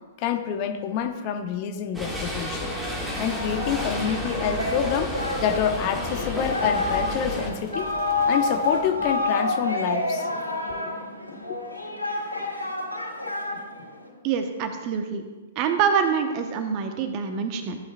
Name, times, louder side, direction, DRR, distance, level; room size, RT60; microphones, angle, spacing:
voice 1, 0.2-2.7 3.2-7.9 8.3-10.3 11.4-11.6, left 8 dB, 35° left, 7 dB, 0.7 m, -27 dB
sound 1, 1.9-7.5, left 1 dB, 5° right, 1.8 m, -31 dB
sound 2, 3.1-9.7, left 3 dB, 15° left, 2.2 m, -46 dB
Singing, 3.1-14.1, left 2 dB, 90° right, 3.1 m, -29 dB
voice 2, 14.2-15.2 15.5-17.8, right 6 dB, 35° right, 6 dB, 1.0 m, -25 dB
15.0 x 8.6 x 2.4 m, 1.3 s
figure-of-eight pair, 115°, 0 cm